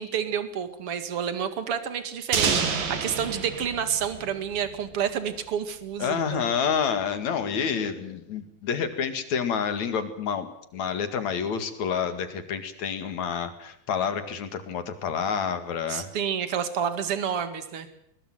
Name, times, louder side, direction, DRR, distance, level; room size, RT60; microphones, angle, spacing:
voice 1, 0.0-6.5 15.9-17.9, right 8 dB, 45° right, 11 dB, 2.7 m, -29 dB
sound 1, 2.3-5.1, right 6 dB, 85° right, 4.5 m, -29 dB
voice 2, 6.0-16.1, left 7 dB, 60° left, 10 dB, 3.3 m, -28 dB
21.5 x 21.0 x 7.9 m, 0.72 s
omnidirectional pair, 3.9 m